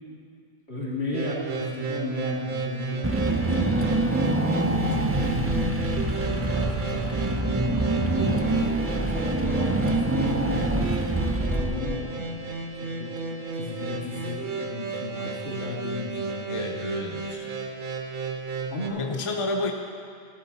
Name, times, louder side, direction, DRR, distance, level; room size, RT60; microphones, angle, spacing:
voice 1, 0.7-12.4 12.8-13.2 13.5-17.1 18.0-18.1 18.7-19.0, left 2 dB, 75° left, -5 dB, 3.0 m, -35 dB
sound 1, 1.1-18.9, right 3 dB, 50° right, 1.1 m, -33 dB
Car / Engine, 3.0-12.2, right 2 dB, 20° right, 0.4 m, -26 dB
sound 2, 3.0-8.6, left 1 dB, 85° right, 3.1 m, -34 dB
voice 2, 3.4-4.8 16.5-17.5 19.0-19.7, left 2 dB, 30° left, 2 dB, 0.8 m, -32 dB
15.0 x 12.5 x 4.2 m, 2.3 s
omnidirectional pair, 1.1 m